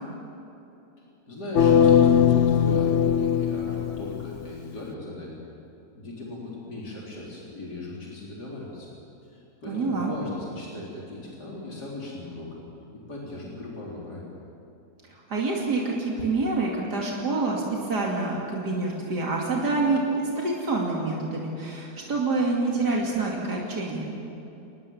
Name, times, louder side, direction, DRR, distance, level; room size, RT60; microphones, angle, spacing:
voice 1, 1.3-5.4 5.9-8.9 9.2-12.7 12.9-14.3, left 2 dB, 85° left, -4 dB, 4.4 m, -38 dB
sound 1, 1.6-4.5, left 8 dB, 55° left, 0.9 m, -20 dB
voice 2, 9.7-10.1 15.3-24.1, right 3 dB, 90° right, -2 dB, 3.3 m, -27 dB
28.5 x 20.5 x 7.3 m, 2.8 s
omnidirectional pair, 1.7 m